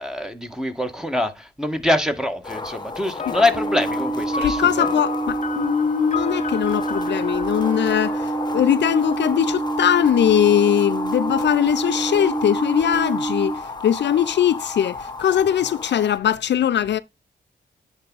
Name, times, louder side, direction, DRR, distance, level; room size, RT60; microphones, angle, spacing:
voice 1, 0.0-4.9, left 1 dB, 5° right, 1.6 m, -24 dB
sound 1, 2.4-16.2, left 3 dB, 20° left, 1.2 m, -33 dB
sound 2, 3.2-9.0, left 5 dB, 40° left, 0.8 m, -32 dB
sound 3, 3.5-13.5, right 3 dB, 50° right, 1.7 m, -27 dB
voice 2, 4.4-17.0, left 10 dB, 65° left, 0.5 m, -21 dB
10.0 x 3.6 x 4.0 m
supercardioid pair, 50°, 19 cm